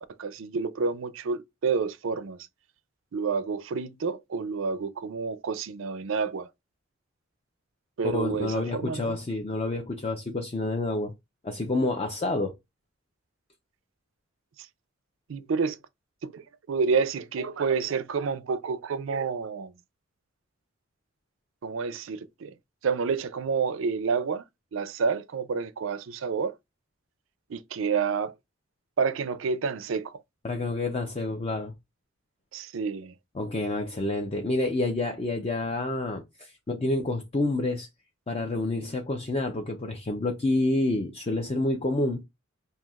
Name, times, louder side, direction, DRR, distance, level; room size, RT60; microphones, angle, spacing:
voice 1, 0.2-2.4 3.1-6.5 8.0-9.2 15.3-15.8 16.2-19.7 21.6-22.5 22.8-24.4 24.7-26.5 27.5-28.3 29.0-30.1 32.5-33.1, right 5 dB, 70° right, 0.4 m, -29 dB
voice 2, 8.0-11.1 11.4-12.5 30.4-31.7 33.3-37.9 38.3-42.2, left 2 dB, 30° left, 0.5 m, -28 dB
5.6 x 2.7 x 2.3 m
head